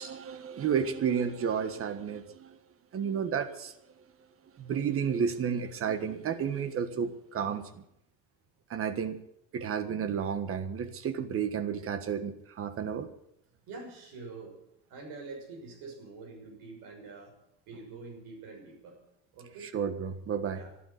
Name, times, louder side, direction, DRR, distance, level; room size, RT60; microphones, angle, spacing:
voice 1, 0.0-2.6 2.9-3.7 4.6-7.8 8.7-9.2 9.5-13.1 19.6-20.6, right 7 dB, 40° right, 10 dB, 1.6 m, -32 dB
voice 2, 13.7-14.6 14.9-17.3 17.7-19.0 19.3-19.7 20.5-20.7, right 3 dB, 70° right, 2 dB, 6.6 m, -45 dB
12.5 x 12.0 x 9.4 m, 0.79 s
cardioid pair, 140°, 36 cm